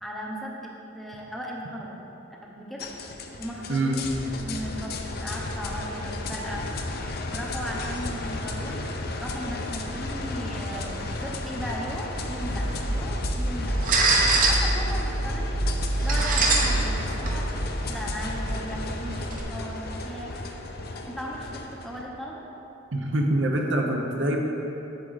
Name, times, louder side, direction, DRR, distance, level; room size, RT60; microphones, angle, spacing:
voice 1, 0.0-2.0 2.4-2.9 3.4-4.1 4.4-6.6 7.3-8.9 9.2-13.7 14.3-15.6 16.0-17.5 17.9-20.4 21.1-22.4, equal, ahead, -3 dB, 0.7 m, -37 dB
sound 1, 2.8-22.0, left 2 dB, 50° left, 0.6 m, -34 dB
sound 2, 12.1-19.4, right 2 dB, 40° right, 0.9 m, -25 dB
voice 2, 22.9-24.4, right 1 dB, 65° right, 1 dB, 0.9 m, -25 dB
7.9 x 7.7 x 4.0 m, 2.9 s
head